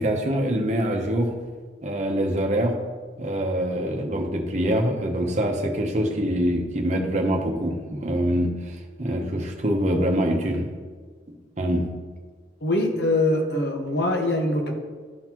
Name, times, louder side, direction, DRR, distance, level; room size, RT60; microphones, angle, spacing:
voice 1, 0.0-1.3 1.8-2.8 3.2-10.6 11.6-11.9, equal, 40° right, 1 dB, 0.8 m, -24 dB
voice 2, 12.6-14.7, left 1 dB, 65° left, 2 dB, 1.0 m, -23 dB
11.5 x 3.9 x 3.0 m, 1.5 s
head